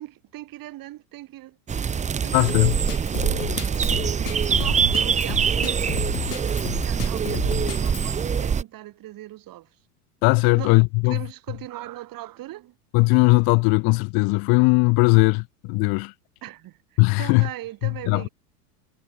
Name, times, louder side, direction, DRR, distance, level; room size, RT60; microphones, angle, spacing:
voice 1, 0.0-1.6 2.2-2.8 3.1-9.7 10.5-10.8 11.0-12.7 16.4-18.3, right 15 dB, 45° right, 5.2 m, -40 dB
sound 1, 1.7-8.6, right 6 dB, 15° right, 0.8 m, -24 dB
voice 2, 2.3-2.7 10.2-11.2 12.9-16.1 17.0-17.5 17.8-18.3, left 30 dB, 50° left, 1.3 m, -19 dB
Drum kit, 2.5-8.1, left 11 dB, 80° left, 2.0 m, -33 dB
hypercardioid pair, 90°, 47 cm